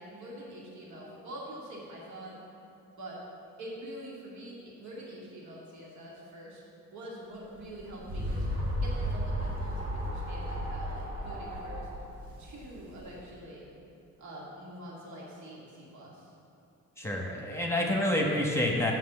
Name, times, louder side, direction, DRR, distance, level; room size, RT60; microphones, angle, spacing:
voice 1, 0.0-2.4 3.0-3.2 3.6-6.6 6.9-8.5 8.8-11.9 12.4-13.7 14.2-16.3, right 1 dB, 70° right, -5 dB, 2.2 m, -45 dB
sound 1, 7.6-13.2, equal, 50° right, 1.8 m, -34 dB
voice 2, 17.0-18.9, left 1 dB, 10° left, -1 dB, 1.3 m, -28 dB
7.6 x 6.1 x 7.3 m, 2.8 s
cardioid pair, 90°, 30 cm